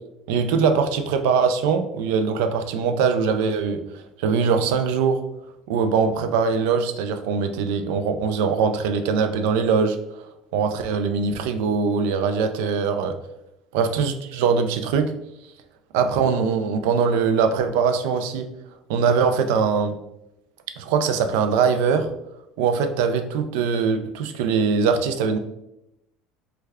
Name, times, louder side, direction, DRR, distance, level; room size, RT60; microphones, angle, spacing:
voice 1, 0.3-5.2 5.7-10.0 10.5-13.1 13.7-15.1 15.9-18.5 18.9-19.9 20.8-22.1 22.6-25.4, right 5 dB, 80° right, 8 dB, 0.4 m, -22 dB
3.2 x 2.3 x 3.4 m, 0.85 s
cardioid pair, 155°, 0 cm